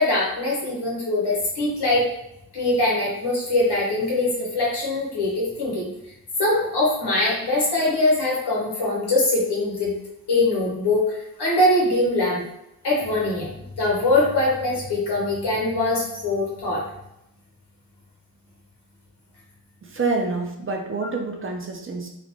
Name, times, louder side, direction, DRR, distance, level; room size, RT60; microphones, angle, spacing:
voice 1, 0.0-2.1 2.5-5.9 6.4-9.9 10.3-12.4 12.8-16.8, left 2 dB, 90° left, -4 dB, 1.0 m, -22 dB
voice 2, 19.8-22.1, right 3 dB, 35° right, 2 dB, 0.5 m, -27 dB
2.5 x 2.1 x 2.8 m, 0.84 s
cardioid pair, 50°, 39 cm